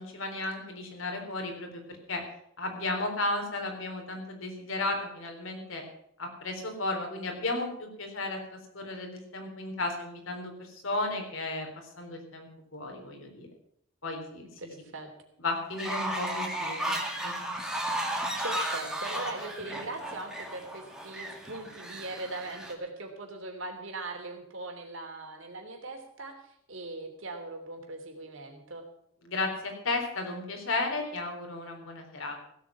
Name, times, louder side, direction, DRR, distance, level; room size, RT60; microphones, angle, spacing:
voice 1, 0.0-1.8 2.1-2.2 2.6-5.8 6.2-11.7 12.0-13.5 14.0-14.5 15.4-17.3 29.2-32.4, left 2 dB, 70° left, 3 dB, 3.8 m, -34 dB
voice 2, 14.4-15.1 18.4-28.8, right 2 dB, 65° right, 3 dB, 3.1 m, -40 dB
Fowl, 15.7-22.7, right 1 dB, 5° right, 2.0 m, -34 dB
16.0 x 8.4 x 7.4 m, 0.76 s
head